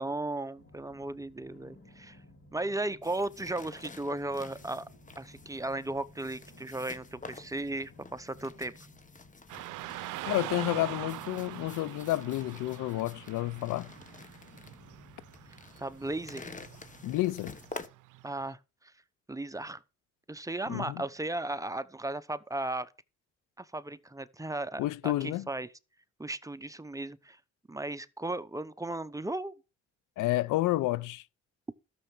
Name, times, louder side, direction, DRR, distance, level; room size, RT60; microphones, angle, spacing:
voice 1, 0.0-2.2 2.5-4.8 5.2-8.7 15.8-16.5 18.2-18.6 19.3-19.8 20.3-22.9 23.6-25.7 26.2-27.4 27.7-29.5, right 2 dB, 10° right, 0.9 m, -36 dB
sound 1, 0.5-17.3, left 1 dB, 45° left, 6.0 m, -57 dB
sound 2, 3.0-17.9, left 4 dB, 25° left, 1.4 m, -50 dB
Car passing by / Traffic noise roadway noise, 9.5-18.5, right 17 dB, 85° right, 0.6 m, -44 dB
voice 2, 10.2-13.9 17.0-17.5 20.7-21.0 24.8-25.5 30.2-31.2, left 17 dB, 90° left, 0.6 m, -30 dB
12.5 x 6.9 x 6.2 m
cardioid pair, 90°, 30 cm